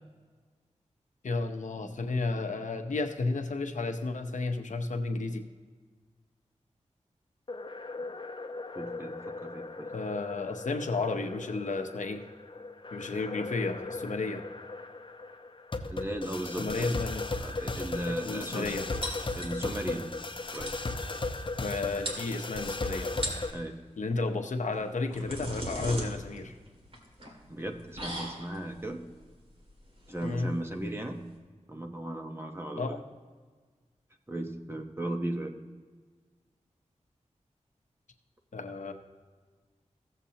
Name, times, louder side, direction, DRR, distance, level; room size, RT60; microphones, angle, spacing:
voice 1, 1.2-5.4 9.9-12.2 12.9-14.4 16.6-17.3 18.0-18.9 21.6-23.5 24.0-26.5 30.2-30.5 32.8-33.0 38.5-38.9, left 3 dB, 80° left, 5 dB, 0.8 m, -32 dB
sound 1, 7.5-23.5, left 3 dB, 40° left, 0.8 m, -37 dB
voice 2, 8.7-9.9 15.9-17.0 17.4-19.0 19.3-20.1 20.5-20.7 23.5-23.7 27.5-29.0 30.1-31.2 31.7-33.0 34.3-35.5, right 1 dB, 20° right, 4 dB, 1.0 m, -36 dB
sound 2, 19.0-19.9 20.2-20.3 20.5-20.9 21.7-21.8 22.0-22.7 23.1-23.6 24.7-31.4, equal, 50° right, 2.4 m, -39 dB
16.0 x 7.4 x 2.8 m, 1.5 s
wide cardioid pair, 75°, 13 cm